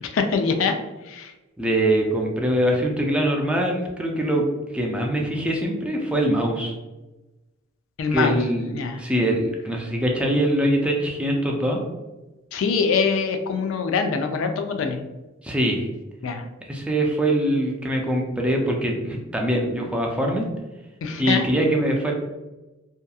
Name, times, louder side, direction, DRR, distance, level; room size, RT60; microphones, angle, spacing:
voice 1, 0.0-0.8 1.0-1.3 8.0-8.4 8.7-9.0 12.5-15.0 16.2-16.4 21.0-21.4, left 5 dB, 75° left, 6 dB, 0.3 m, -23 dB
voice 2, 1.6-4.4 4.7-6.7 8.1-8.7 9.0-11.8 15.4-15.9 16.6-20.5 21.2-22.1, right 1 dB, 5° right, 0 dB, 0.3 m, -23 dB
2.8 x 2.3 x 2.3 m, 1.1 s
head